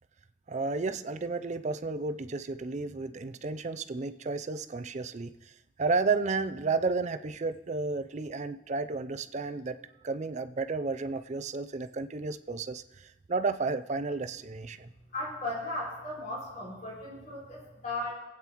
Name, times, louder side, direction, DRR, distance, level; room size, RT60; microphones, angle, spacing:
voice 1, 0.5-5.3 5.8-9.8 10.0-14.9, right 4 dB, 35° right, 10 dB, 0.4 m, -32 dB
voice 2, 15.1-18.1, left 1 dB, 40° left, -6 dB, 4.4 m, -36 dB
24.5 x 8.7 x 3.0 m, 1.0 s
head